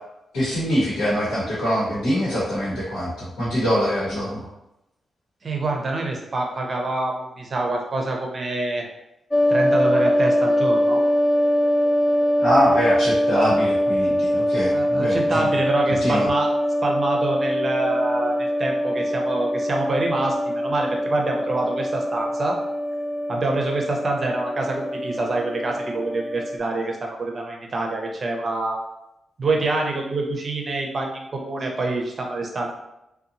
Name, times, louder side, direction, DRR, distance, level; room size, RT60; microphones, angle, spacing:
voice 1, 0.3-4.5 12.4-15.5 16.0-16.3, equal, 85° left, -9 dB, 1.0 m, -23 dB
voice 2, 5.4-8.8 9.5-11.0 14.7-16.5 16.8-22.6 23.3-28.8 29.4-32.7, right 2 dB, 50° right, 1 dB, 0.6 m, -26 dB
sound 1, 9.3-26.6, equal, 10° left, 0.3 m, -23 dB
2.7 x 2.2 x 2.6 m, 0.89 s
supercardioid pair, 50°, 0 cm